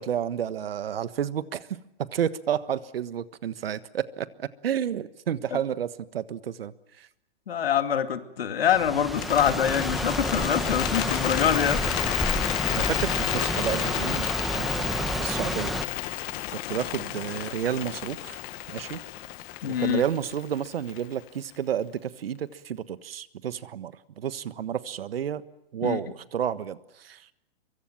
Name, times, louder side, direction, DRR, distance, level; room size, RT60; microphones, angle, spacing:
voice 1, 0.0-1.7 2.1-7.1 12.7-14.3 14.5-15.8 16.1-18.4 18.7-19.0 19.8-25.4 25.7-27.2, right 9 dB, 70° right, 14 dB, 1.4 m, -31 dB
voice 2, 7.5-11.8 19.6-20.0 25.8-26.0, left 9 dB, 75° left, 8 dB, 2.5 m, -25 dB
sound 1, 8.7-15.8, equal, ahead, 1.2 m, -30 dB
Bird, 9.1-21.3, left 17 dB, 30° left, 1.5 m, -32 dB
23.5 x 23.5 x 7.4 m, 0.87 s
hypercardioid pair, 135°, 30 cm